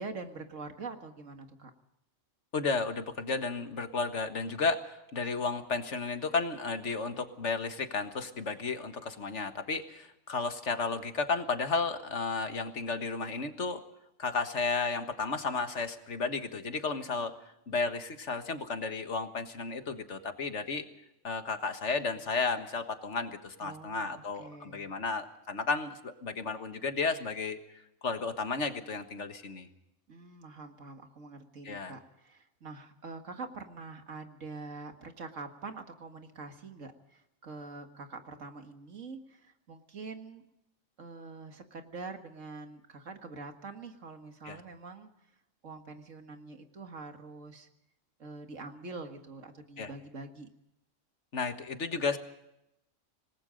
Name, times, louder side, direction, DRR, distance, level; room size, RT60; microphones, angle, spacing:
voice 1, 0.0-1.7 23.6-24.9 30.1-40.4 41.0-45.1 45.6-47.7 48.2-50.5, right 3 dB, 80° right, 6 dB, 2.2 m, -45 dB
voice 2, 2.5-13.8 14.2-17.3 17.7-20.9 21.2-27.6 28.0-29.7 31.7-31.9 44.5-44.6 49.8-49.9 51.3-52.2, left 4 dB, 65° left, 8 dB, 1.8 m, -33 dB
26.5 x 19.5 x 5.2 m, 0.84 s
omnidirectional pair, 1.3 m